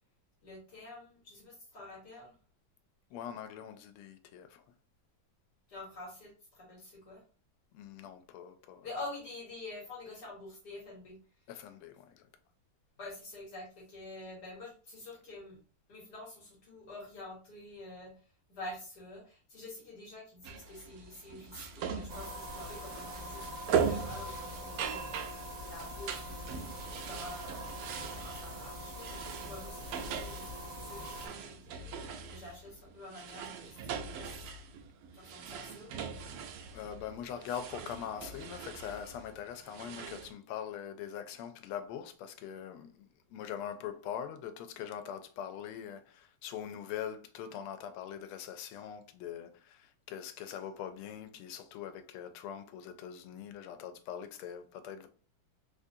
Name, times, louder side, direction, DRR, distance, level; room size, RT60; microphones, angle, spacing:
voice 1, 0.4-2.3 5.7-7.2 8.8-11.2 13.0-15.6 15.9-25.2 25.6-26.6 27.0-27.7 28.1-29.2 29.4-31.9 32.2-34.3 35.1-36.1, left 2 dB, 55° left, 1.6 m, -47 dB
voice 2, 3.1-4.6 7.7-8.9 11.5-12.3 36.7-55.1, left 9 dB, 90° left, 1.5 m, -42 dB
sound 1, 20.4-40.3, right 6 dB, 90° right, 1.5 m, -40 dB
sound 2, 22.1-31.3, equal, 60° right, 0.9 m, -43 dB
4.1 x 2.4 x 2.7 m
omnidirectional pair, 2.4 m